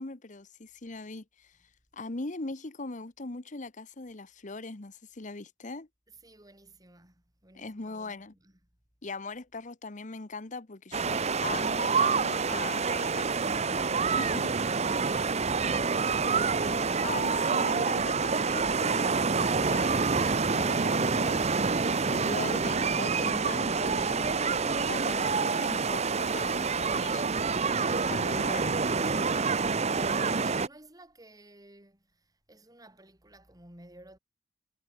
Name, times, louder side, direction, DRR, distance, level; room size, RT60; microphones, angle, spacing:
voice 1, 0.0-1.6 1.9-5.9 7.5-8.3 9.0-13.9 14.2-14.5 16.5-27.4 27.9-28.8, left 3 dB, 45° left, 1.1 m, -41 dB
voice 2, 6.2-8.5 29.5-34.2, right 1 dB, 20° right, 4.4 m, -54 dB
sound 1, 10.9-30.7, right 4 dB, 35° right, 0.9 m, -27 dB
head